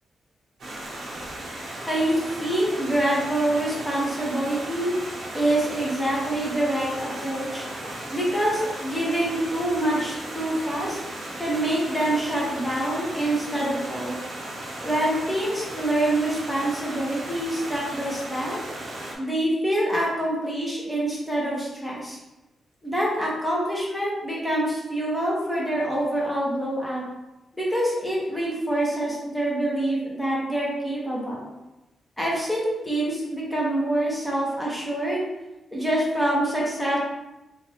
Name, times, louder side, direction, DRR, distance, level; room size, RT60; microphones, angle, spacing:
Stream, 0.6-19.1, right 1 dB, 55° right, 0.9 m, -36 dB
voice 1, 1.9-4.9 5.3-7.7 8.1-11.0 11.4-14.2 14.8-18.6 19.2-22.2 22.8-27.0 27.5-31.5 32.2-35.2 35.7-37.0, right 1 dB, 5° left, -5 dB, 0.9 m, -26 dB
3.3 x 2.5 x 4.1 m, 0.97 s
wide cardioid pair, 155°, 0 cm